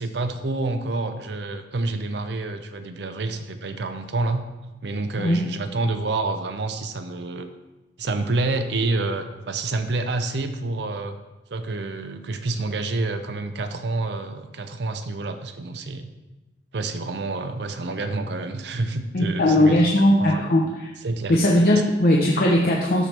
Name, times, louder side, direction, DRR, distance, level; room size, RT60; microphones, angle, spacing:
voice 1, 0.0-4.4 4.8-7.5 8.0-11.2 11.5-16.1 16.7-19.8 20.2-20.5 21.0-21.4, right 2 dB, 60° right, 8 dB, 0.5 m, -28 dB
voice 2, 19.1-20.9 21.3-23.1, left 1 dB, 50° left, -2 dB, 0.8 m, -19 dB
13.0 x 4.5 x 3.3 m, 1.1 s
head